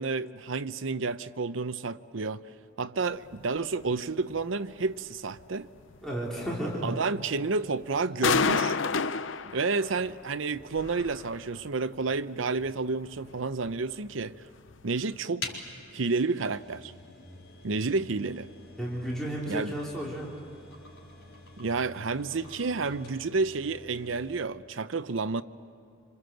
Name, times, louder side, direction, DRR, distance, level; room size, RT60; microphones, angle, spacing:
voice 1, 0.0-2.4 2.8-5.7 6.8-8.8 9.5-14.3 14.8-15.6 15.9-16.9 17.6-18.5 19.5-19.7 21.6-25.4, right 4 dB, 75° right, 0.7 m, -30 dB
sound 1, 3.3-3.4 3.8-4.0 4.3-4.4 4.8-4.9 5.3-5.5 5.8-6.0 6.4-7.0 7.4-7.7 8.0-8.1 8.2-10.2 10.5-11.7 12.1-12.2 12.6-12.8 13.1-13.8 14.1-14.4 14.7-14.8 15.1-15.2, left 5 dB, 70° left, 0.7 m, -30 dB
voice 2, 6.0-7.0 18.8-20.3, right 1 dB, ahead, 3.9 m, -33 dB
sound 2, 15.4-24.5, left 3 dB, 85° left, 4.5 m, -46 dB
27.5 x 26.5 x 7.8 m
head